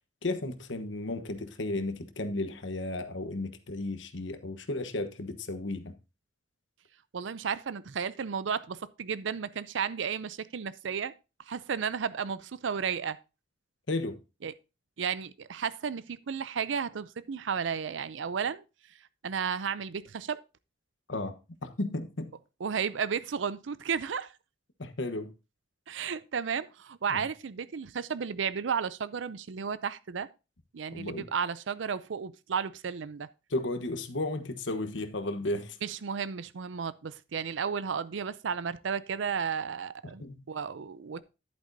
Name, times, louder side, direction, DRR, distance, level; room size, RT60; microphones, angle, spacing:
voice 1, 0.2-5.9 13.9-14.2 21.1-22.3 24.8-25.3 27.1-27.2 30.9-31.3 33.5-35.8 40.2-40.4, left 2 dB, 80° left, 1.2 m, -34 dB
voice 2, 7.1-11.1 11.5-13.2 14.4-14.5 15.0-18.6 19.2-20.4 22.6-24.3 25.9-30.3 30.7-33.3 35.8-41.2, right 6 dB, 80° right, 0.5 m, -33 dB
10.5 x 8.7 x 2.7 m
head